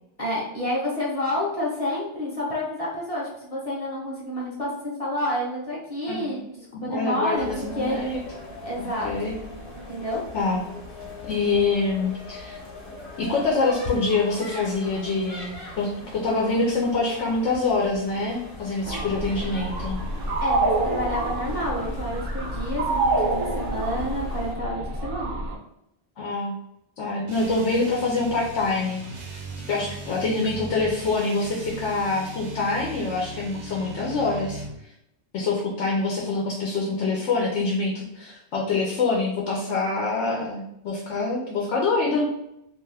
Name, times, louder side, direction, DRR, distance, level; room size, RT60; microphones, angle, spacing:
voice 1, 0.2-8.0 8.6-9.4 9.9-10.2 20.4-25.4, left 1 dB, 35° left, -5 dB, 0.7 m, -29 dB
voice 2, 6.7-8.2 8.8-9.3 10.3-10.6 11.2-12.6 13.2-20.0 26.2-26.5 27.0-34.6 35.3-42.3, left 3 dB, 90° left, -2 dB, 0.9 m, -25 dB
sound 1, 7.3-24.5, left 2 dB, 55° left, 1.0 m, -40 dB
sound 2, 18.9-25.6, right 2 dB, 65° right, 0.7 m, -27 dB
sound 3, 27.2-34.8, right 3 dB, 80° right, 1.0 m, -38 dB
2.5 x 2.2 x 3.3 m, 0.82 s
omnidirectional pair, 1.2 m